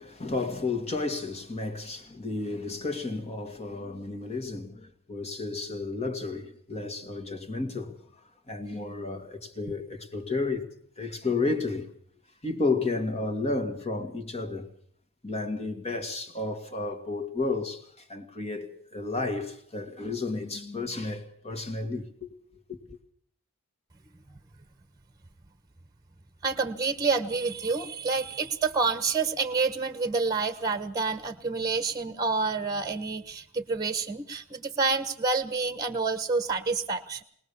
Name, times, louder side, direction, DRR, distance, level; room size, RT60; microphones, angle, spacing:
voice 1, 0.0-10.7 11.0-11.9 12.4-14.7 15.2-22.4 22.7-23.0, left 3 dB, 30° left, 2.1 m, -32 dB
voice 2, 26.4-37.2, right 4 dB, 20° right, 1.3 m, -28 dB
22.0 x 19.5 x 7.0 m
head